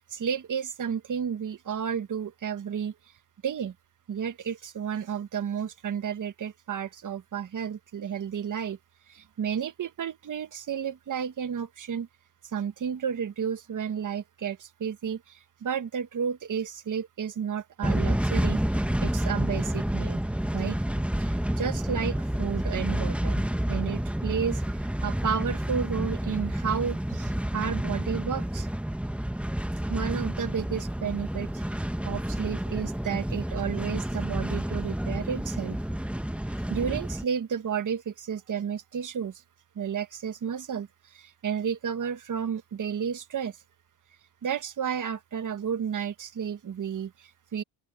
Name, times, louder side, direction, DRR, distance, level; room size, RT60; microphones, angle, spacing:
voice 1, 0.0-2.9 3.4-3.7 4.1-8.8 9.1-12.1 12.4-18.6 19.0-20.2 20.5-20.8 21.2-23.4 23.7-28.7 29.9-35.8 36.7-39.4 39.8-43.6 44.4-47.6, right 7 dB, 45° right, 1.8 m, -32 dB
sound 1, 17.8-37.2, right 1 dB, 5° right, 1.6 m, -29 dB
open air
supercardioid pair, 75°, 43 cm